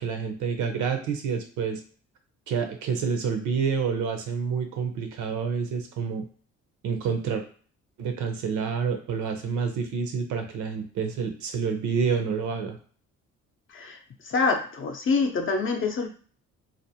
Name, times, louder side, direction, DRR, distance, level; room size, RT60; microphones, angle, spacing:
voice 1, 0.0-1.8 2.5-6.3 6.8-7.4 8.0-12.8, right 6 dB, 75° right, 5 dB, 0.7 m, -28 dB
voice 2, 14.3-16.1, left 4 dB, 45° left, 3 dB, 0.6 m, -25 dB
2.5 x 2.0 x 2.8 m, 0.43 s
cardioid pair, 90°, 30 cm